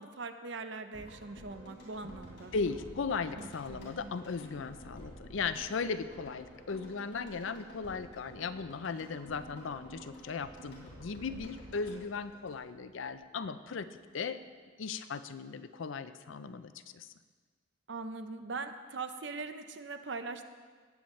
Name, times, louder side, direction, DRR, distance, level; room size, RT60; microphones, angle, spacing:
voice 1, 0.0-2.5 3.3-4.1 17.9-20.4, right 4 dB, 60° right, 8 dB, 0.7 m, -41 dB
sound 1, 0.9-13.1 13.4-13.5, equal, 60° left, 3.8 m, -51 dB
voice 2, 2.5-13.9 14.1-14.4 14.8-17.1, left 5 dB, 75° left, 12 dB, 0.5 m, -37 dB
17.5 x 8.5 x 3.2 m, 1.5 s
head